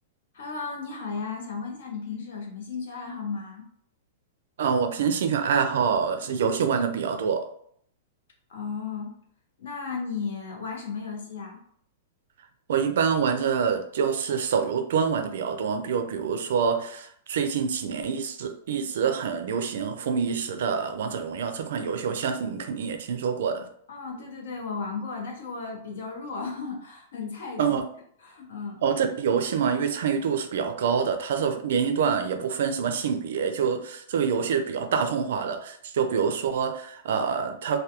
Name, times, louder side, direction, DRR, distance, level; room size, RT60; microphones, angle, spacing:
voice 1, 0.3-3.7 8.5-9.2 9.6-11.6 23.9-27.8 28.2-28.8, left 5 dB, 70° left, 0 dB, 0.8 m, -35 dB
voice 2, 4.6-7.5 12.7-23.7 27.6-27.8 28.8-37.8, right 6 dB, 60° right, 7 dB, 0.4 m, -26 dB
2.3 x 2.2 x 2.8 m, 0.64 s
supercardioid pair, 180°, 0 cm